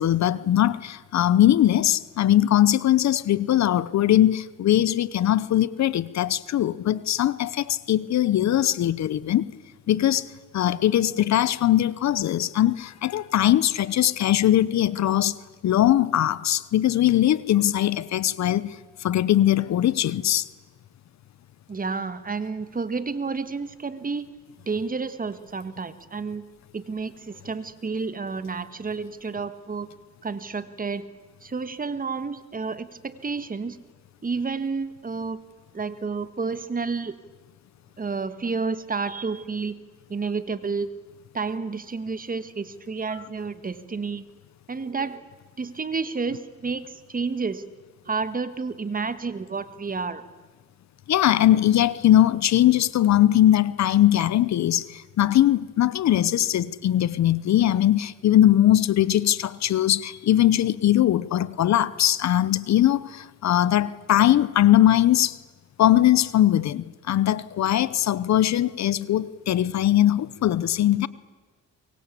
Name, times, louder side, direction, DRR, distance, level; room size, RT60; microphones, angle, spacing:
voice 1, 0.0-9.5 9.9-10.3 10.5-15.4 15.6-20.4 51.1-65.4 65.8-71.1, left 12 dB, 65° left, 0.9 m, -21 dB
voice 2, 21.7-24.3 24.6-26.5 26.7-29.9 30.2-31.1 31.4-33.8 34.2-35.4 35.7-37.1 38.0-39.8 40.1-40.9 41.3-44.2 44.7-45.2 45.6-47.7 48.0-50.2, right 4 dB, 30° right, 1.7 m, -30 dB
23.5 x 23.0 x 8.5 m
cardioid pair, 90°, 30 cm